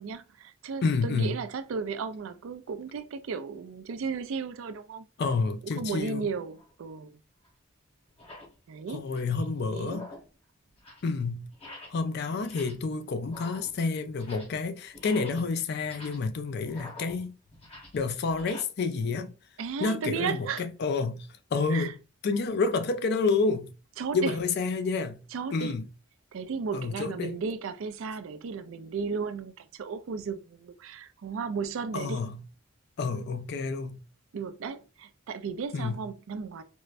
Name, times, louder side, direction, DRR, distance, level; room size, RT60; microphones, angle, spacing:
voice 1, 0.0-5.0 5.6-7.2 8.7-9.0 9.4-10.0 19.6-20.7 21.7-21.9 24.0-24.3 25.3-25.7 26.3-32.2 34.3-36.6, right 5 dB, 70° right, 0.4 m, -35 dB
voice 2, 0.8-1.4 5.2-6.3 8.9-10.1 11.0-11.5 11.9-17.4 17.9-19.3 19.8-22.0 22.2-23.7 24.1-25.2 25.5-25.8 26.7-27.4 31.9-32.4 33.0-34.0 35.7-36.0, left 4 dB, 50° left, 0.4 m, -29 dB
sound 1, 6.5-6.7 7.4-7.5 8.1-8.6 8.9-9.4 9.8-10.4 10.7-11.1 11.5-12.1 12.4-12.9 13.2-14.6 14.9-18.6, left 1 dB, 30° left, 0.9 m, -47 dB
4.4 x 2.0 x 2.4 m
head